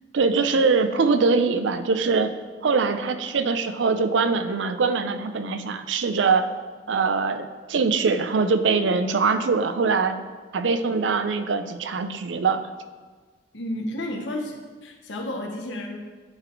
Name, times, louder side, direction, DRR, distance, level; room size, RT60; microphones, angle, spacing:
voice 1, 0.1-2.3 2.6-6.5 6.9-10.2 10.5-12.6, right 4 dB, 85° right, 9 dB, 0.5 m, -22 dB
voice 2, 13.5-16.0, left 1 dB, 90° left, 1 dB, 1.1 m, -32 dB
9.7 x 4.0 x 4.5 m, 1.4 s
head